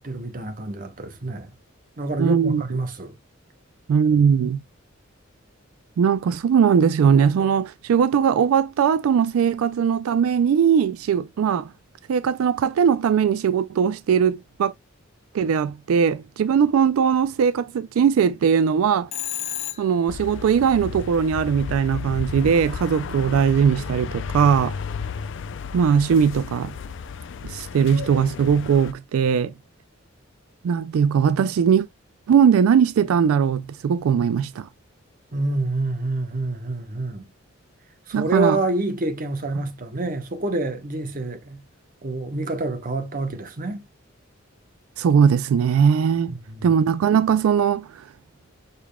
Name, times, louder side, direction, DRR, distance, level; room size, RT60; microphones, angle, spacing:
voice 1, 0.0-1.5 2.0-3.1 35.3-37.3 38.1-41.6 42.0-43.8 46.3-46.7, right 2 dB, 40° right, 0.9 m, -27 dB
voice 2, 2.2-2.6 3.9-4.6 6.0-11.7 12.1-14.7 15.3-19.1 19.8-24.8 25.7-26.7 27.4-29.5 30.6-31.9 32.3-34.7 38.1-38.6 45.0-48.1, right 7 dB, 85° right, 0.3 m, -20 dB
Telephone, 19.1-20.2, left 12 dB, 30° left, 0.7 m, -31 dB
sound 1, 20.1-28.9, left 6 dB, 60° left, 0.4 m, -33 dB
6.6 x 3.5 x 2.2 m
head